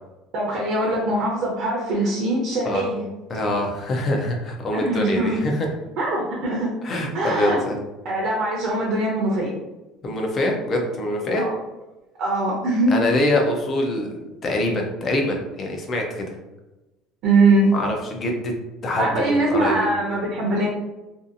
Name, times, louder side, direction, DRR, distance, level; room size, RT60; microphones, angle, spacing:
voice 1, 0.3-3.0 4.7-5.4 6.0-6.7 7.1-7.6 8.0-9.5 11.4-11.5 12.2-13.0 17.2-17.7 19.0-20.7, right 2 dB, 50° right, -3 dB, 0.6 m, -22 dB
voice 2, 3.3-5.7 6.8-7.8 10.0-11.4 12.9-16.4 17.7-18.5 18.8-19.9, left 1 dB, 30° left, 1 dB, 0.5 m, -24 dB
2.6 x 2.4 x 2.5 m, 1.0 s
cardioid pair, 165°, 0 cm